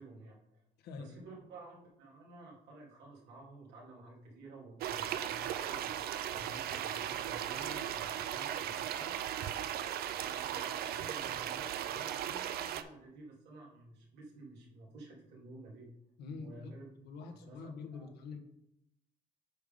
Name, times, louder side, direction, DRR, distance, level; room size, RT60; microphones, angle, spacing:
voice 1, 0.0-0.6 1.0-5.9 6.3-9.2 10.2-15.9 16.3-16.9 17.3-18.1, right 2 dB, 85° right, -2 dB, 2.2 m, -52 dB
voice 2, 0.8-1.1 16.2-18.4, left 4 dB, 75° left, 5 dB, 1.2 m, -46 dB
sound 1, 4.8-12.8, right 10 dB, 65° right, 0.5 m, -37 dB
7.9 x 3.6 x 5.1 m, 0.78 s
cardioid pair, 110°, 17 cm